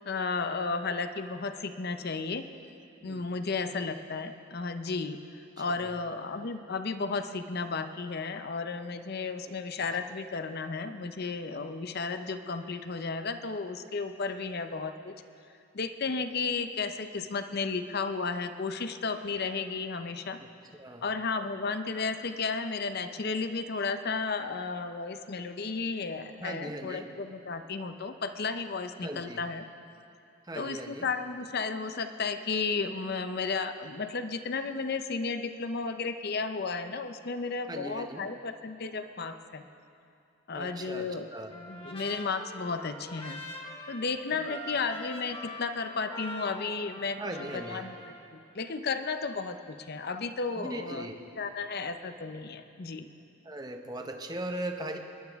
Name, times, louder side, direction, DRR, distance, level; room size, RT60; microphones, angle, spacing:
voice 1, 0.0-2.5 3.0-5.2 5.6-15.1 15.7-20.4 21.0-29.6 30.5-39.7 40.5-41.3 41.5-43.4 43.9-47.2 47.5-48.0 48.3-51.1 51.4-53.1, left 4 dB, 50° left, 9 dB, 0.6 m, -33 dB
voice 2, 3.0-3.4 5.7-5.9 20.4-20.5 20.8-21.1 26.4-27.1 29.0-29.4 30.4-31.1 37.7-38.3 40.5-41.5 44.5-44.6 47.2-47.9 50.6-51.2 53.4-55.0, right 1 dB, 20° right, 5 dB, 0.8 m, -39 dB
Trumpet, 41.5-48.2, left 1 dB, 25° left, 1.3 m, -44 dB
26.0 x 11.5 x 3.6 m, 2.6 s
head